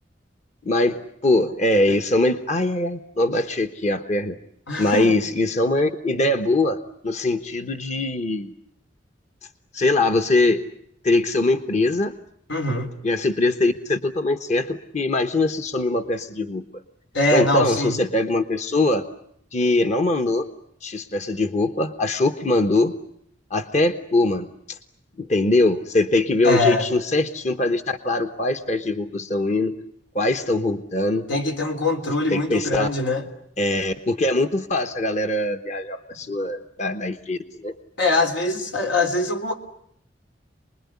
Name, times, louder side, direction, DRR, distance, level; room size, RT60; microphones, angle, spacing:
voice 1, 0.6-4.4 4.7-8.5 9.7-10.6 11.0-12.1 13.0-16.6 17.3-19.0 19.5-20.5 20.8-22.9 23.5-24.8 25.2-29.7 30.1-31.3 32.3-32.9 33.6-37.7, left 2 dB, 40° left, 7 dB, 1.1 m, -22 dB
voice 2, 4.7-5.2 12.5-12.9 17.1-18.0 26.4-26.9 31.3-33.2 38.0-39.5, left 2 dB, 85° left, 4 dB, 3.5 m, -22 dB
28.5 x 21.0 x 9.6 m, 0.74 s
head